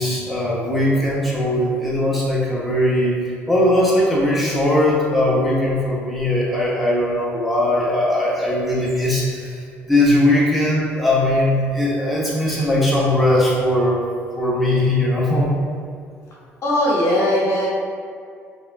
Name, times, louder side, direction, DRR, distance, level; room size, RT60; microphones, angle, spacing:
voice 1, 0.0-3.2 3.5-14.0 14.4-15.5, left 1 dB, ahead, -6 dB, 1.1 m, -19 dB
voice 2, 16.6-17.7, left 1 dB, 45° left, -5 dB, 1.3 m, -19 dB
4.1 x 3.4 x 2.6 m, 2.2 s
hypercardioid pair, 50°, 7 cm